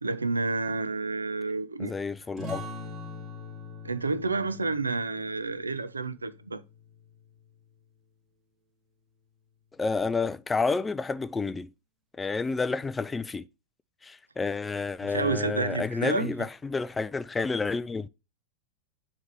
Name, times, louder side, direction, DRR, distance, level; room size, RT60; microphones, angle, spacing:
voice 1, 0.0-1.9 3.8-6.6 15.0-16.3, right 3 dB, 80° right, 0.5 m, -30 dB
voice 2, 1.8-2.6 9.8-11.7 12.2-13.4 14.0-18.1, left 4 dB, 15° left, 0.3 m, -30 dB
sound 1, 2.4-7.6, left 2 dB, 25° right, 2.1 m, -43 dB
7.1 x 3.3 x 6.0 m
figure-of-eight pair, 90°, 0 cm